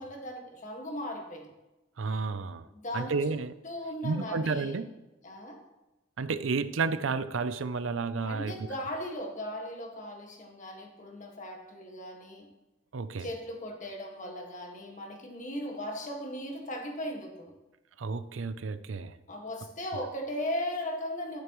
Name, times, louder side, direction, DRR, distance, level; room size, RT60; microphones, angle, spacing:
voice 1, 0.0-1.5 2.6-3.4 3.6-4.8 5.2-5.6 8.2-12.5 13.2-17.5 19.3-21.4, equal, 40° left, 2 dB, 1.8 m, -37 dB
voice 2, 2.0-2.7 2.9-3.5 4.0-4.8 6.2-8.7 12.9-13.3 18.0-19.1, right 4 dB, 80° right, 13 dB, 0.5 m, -31 dB
10.5 x 9.8 x 3.1 m, 1.0 s
head